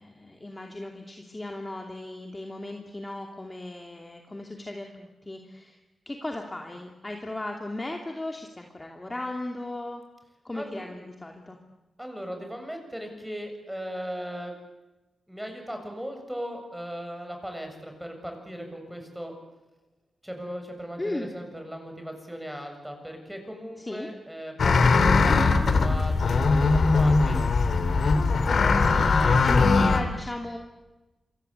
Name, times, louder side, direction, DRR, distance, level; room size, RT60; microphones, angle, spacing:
voice 1, 0.0-5.8 6.1-10.0 10.4-11.6 21.0-21.3 23.8-24.1 28.5-30.6, left 1 dB, 20° left, 2 dB, 2.7 m, -36 dB
voice 2, 10.5-10.9 12.0-14.6 15.3-19.3 20.2-27.4 29.0-29.5, equal, 5° right, 4 dB, 7.3 m, -37 dB
sound 1, 24.6-30.0, left 4 dB, 60° left, 2.9 m, -20 dB
28.0 x 23.5 x 8.2 m, 1.1 s
wide cardioid pair, 105°, 0 cm